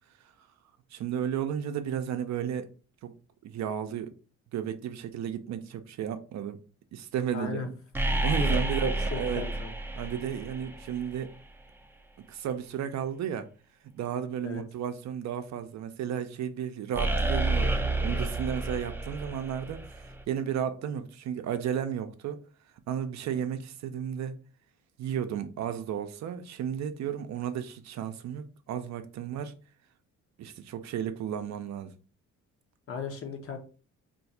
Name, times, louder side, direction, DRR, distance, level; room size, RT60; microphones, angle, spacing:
voice 1, 0.9-2.7 3.0-3.1 3.4-4.1 4.5-6.6 6.9-7.7 8.2-9.4 10.0-11.3 12.3-13.5 13.8-22.4 22.9-24.4 25.0-29.5 30.4-31.9, right 9 dB, 65° right, 0.5 m, -33 dB
voice 2, 7.3-7.7 8.4-8.5 8.8-9.7 14.4-14.6 32.9-33.6, left 5 dB, 45° left, 0.9 m, -36 dB
sound 1, 7.9-11.2 16.9-20.2, right 2 dB, 5° right, 0.5 m, -30 dB
2.5 x 2.4 x 4.1 m
cardioid pair, 90°, 30 cm